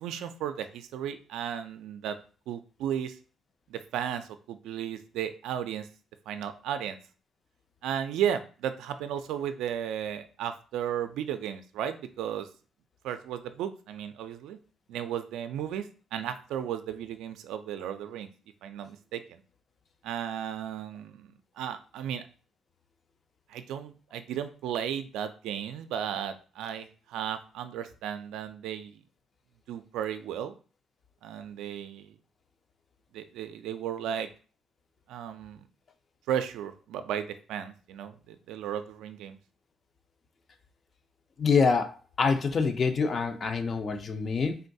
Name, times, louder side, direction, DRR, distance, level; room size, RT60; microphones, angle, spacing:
voice 1, 0.0-2.2 2.5-3.2 3.7-5.9 6.3-7.0 7.8-12.5 13.0-14.6 14.9-18.3 18.6-19.4 20.0-22.2 23.5-29.0 29.7-30.5 31.2-32.1 33.1-34.3 35.1-35.6 36.3-39.4, right 9 dB, 90° right, 9 dB, 0.3 m, -34 dB
voice 2, 41.4-41.9 42.2-44.6, left 5 dB, 45° left, 7 dB, 0.5 m, -25 dB
3.5 x 2.2 x 2.6 m, 0.37 s
cardioid pair, 90°, 0 cm